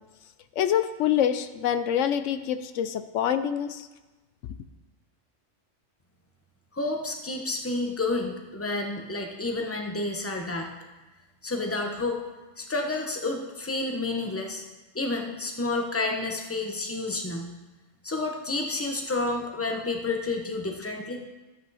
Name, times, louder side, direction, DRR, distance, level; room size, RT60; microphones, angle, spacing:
voice 1, 0.6-3.9, left 9 dB, 85° left, 11 dB, 1.0 m, -26 dB
voice 2, 6.7-10.7 11.4-12.2 12.6-14.6 14.9-17.5 18.0-21.2, left 2 dB, 10° left, 2 dB, 1.0 m, -30 dB
13.5 x 8.3 x 4.1 m, 1.1 s
omnidirectional pair, 1.2 m